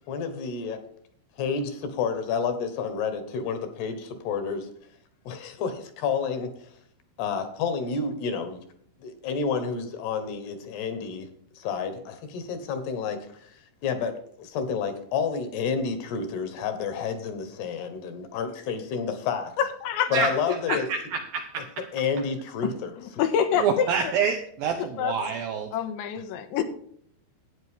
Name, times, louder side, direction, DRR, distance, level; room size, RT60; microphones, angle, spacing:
voice 1, 0.1-0.8 1.4-4.7 5.3-6.5 7.2-8.6 9.0-11.3 11.5-13.2 13.8-14.1 14.4-19.5 20.1-20.9 21.9-22.9, left 5 dB, 70° left, 8 dB, 3.2 m, -29 dB
voice 2, 19.6-20.1 20.7-20.8 22.6-22.7 23.2-23.9 24.8-25.1 25.7-26.6, left 8 dB, 85° left, 7 dB, 3.4 m, -26 dB
voice 3, 20.7-21.8 23.6-25.7, right 6 dB, 80° right, 5 dB, 2.1 m, -27 dB
12.5 x 9.3 x 3.7 m, 0.63 s
omnidirectional pair, 5.2 m